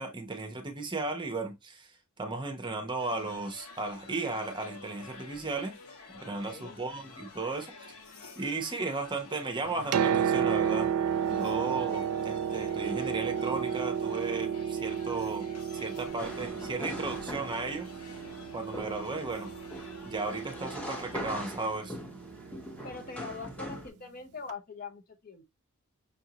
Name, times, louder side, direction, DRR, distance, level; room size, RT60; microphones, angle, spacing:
voice 1, 0.0-1.9 2.2-5.7 6.1-7.7 8.3-10.9 11.3-15.5 15.7-17.9 18.5-19.5 20.0-22.0, right 3 dB, 20° right, 0.8 m, -35 dB
sound 1, 3.0-21.2, left 4 dB, 80° left, 1.2 m, -51 dB
voice 2, 6.2-6.8 22.8-25.4, left 4 dB, 40° left, 0.8 m, -43 dB
Piano, 9.7-23.4 24.5-24.6, right 8 dB, 85° right, 0.4 m, -33 dB
sound 2, 16.1-23.9, equal, 5° left, 0.9 m, -42 dB
5.8 x 2.6 x 2.8 m
head